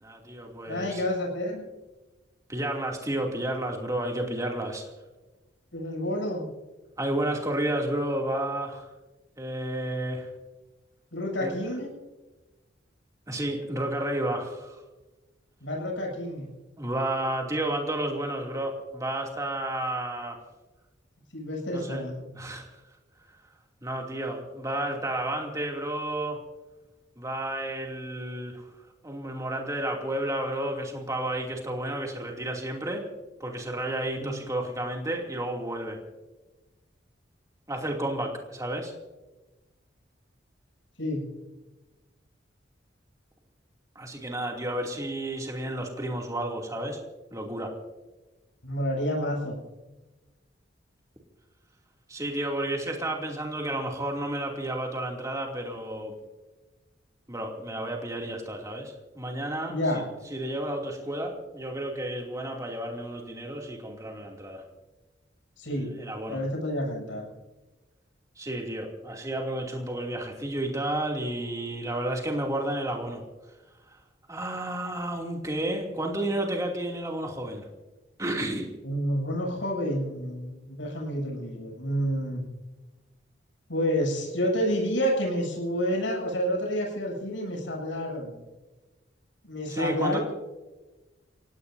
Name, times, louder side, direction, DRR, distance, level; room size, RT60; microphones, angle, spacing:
voice 1, 0.0-1.0 2.5-4.9 7.0-8.9 9.4-10.3 11.4-11.5 13.3-14.8 16.8-20.4 21.7-22.0 22.3-22.6 23.8-26.4 27.2-28.6 29.0-33.1 33.4-36.0 37.7-38.9 43.9-47.0 47.3-47.7 52.1-56.1 57.3-59.8 60.3-64.6 65.8-66.4 68.4-73.2 74.3-77.6 78.2-78.7 89.7-90.2, right 1 dB, 15° right, 1 dB, 2.7 m, -31 dB
voice 2, 0.7-1.7 5.7-6.5 11.1-11.9 15.6-16.5 21.3-22.2 34.2-34.3 41.0-41.2 48.6-49.6 59.7-60.0 65.6-65.9 66.3-67.3 78.8-82.4 83.7-88.4 89.4-90.2, equal, 85° left, 0 dB, 7.7 m, -29 dB
29.0 x 17.5 x 2.7 m, 1.1 s
head